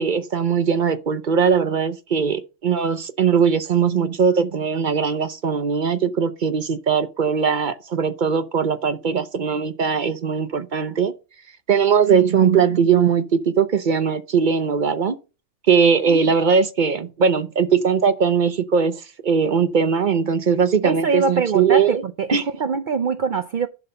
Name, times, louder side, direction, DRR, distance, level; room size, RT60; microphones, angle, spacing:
voice 1, 0.0-11.1 11.7-15.2 15.7-22.0 22.3-22.4, right 6 dB, 45° right, 0.7 m, -20 dB
voice 2, 20.8-23.7, right 5 dB, 80° right, 0.4 m, -23 dB
11.0 x 4.0 x 6.7 m
omnidirectional pair, 1.6 m